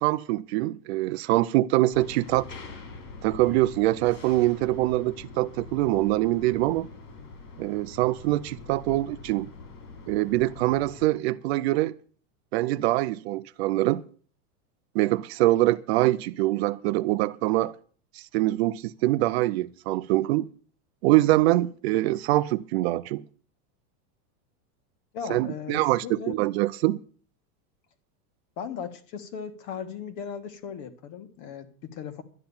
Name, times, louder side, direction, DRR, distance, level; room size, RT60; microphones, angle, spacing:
voice 1, 0.0-2.5 3.2-6.9 7.6-9.5 10.1-11.9 12.5-14.0 14.9-17.8 18.1-20.5 21.0-23.2 25.3-27.0, right 17 dB, 45° right, 0.5 m, -24 dB
sound 1, 1.9-11.1, left 3 dB, 80° left, 4.7 m, -44 dB
voice 2, 25.1-26.4 28.6-32.2, left 7 dB, 40° left, 1.7 m, -37 dB
12.0 x 9.8 x 7.1 m
supercardioid pair, 160°, 47 cm